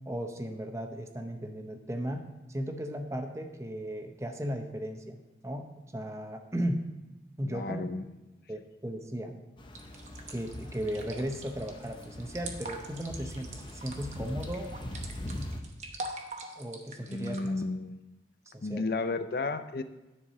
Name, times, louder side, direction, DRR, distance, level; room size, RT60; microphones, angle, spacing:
voice 1, 0.1-6.9 7.4-7.8 8.5-9.4 10.3-14.7 16.6-17.6 18.5-18.9, equal, 15° right, 5 dB, 0.7 m, -36 dB
voice 2, 7.4-8.0 17.1-18.0 18.6-19.8, left 3 dB, 55° left, 10 dB, 0.5 m, -33 dB
sound 1, 9.6-15.6, left 1 dB, 25° left, 0.8 m, -42 dB
sound 2, 9.7-17.5, right 2 dB, 40° right, 0.9 m, -43 dB
10.0 x 4.7 x 6.8 m, 1.0 s
head